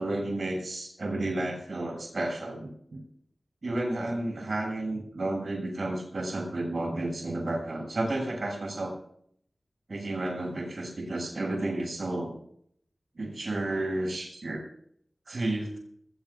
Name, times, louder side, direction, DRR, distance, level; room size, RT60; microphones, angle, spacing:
voice 1, 0.0-3.0 3.6-8.9 9.9-12.3 13.2-14.6 15.3-15.8, right 2 dB, 70° right, 1 dB, 7.3 m, -32 dB
22.0 x 18.5 x 2.5 m, 0.65 s
cardioid pair, 45°, 0 cm